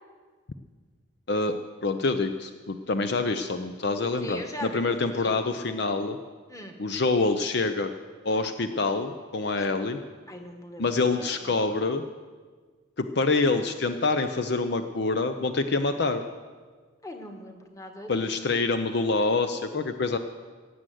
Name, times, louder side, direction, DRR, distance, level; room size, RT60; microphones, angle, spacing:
voice 1, 1.8-6.2 6.8-7.9 8.2-10.0 10.8-12.0 13.0-16.2 18.1-20.2, left 3 dB, 55° left, 8 dB, 0.6 m, -26 dB
voice 2, 4.2-4.9 5.2-5.4 6.5-6.8 9.4-9.7 10.3-10.9 11.1-11.8 17.0-18.3, left 1 dB, 15° left, 4 dB, 1.3 m, -40 dB
17.5 x 7.7 x 7.7 m, 1.5 s
head